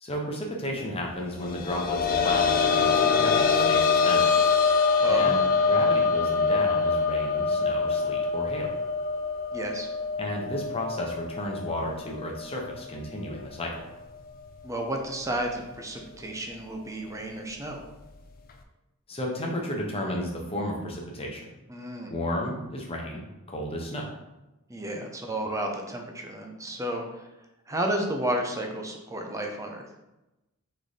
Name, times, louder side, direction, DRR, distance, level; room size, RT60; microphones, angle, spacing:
voice 1, 0.0-4.3 5.1-8.7 10.2-13.7 19.1-21.5 22.1-24.0, left 1 dB, 25° left, 0 dB, 0.8 m, -33 dB
sound 1, 1.5-12.9 13.3-13.4 14.9-15.0, left 5 dB, 40° left, 0.4 m, -24 dB
voice 2, 5.0-5.4 9.5-9.9 14.6-17.8 21.7-22.1 24.7-27.3 27.7-29.9, right 1 dB, 15° right, 2 dB, 0.5 m, -32 dB
3.6 x 3.2 x 4.0 m, 0.97 s
head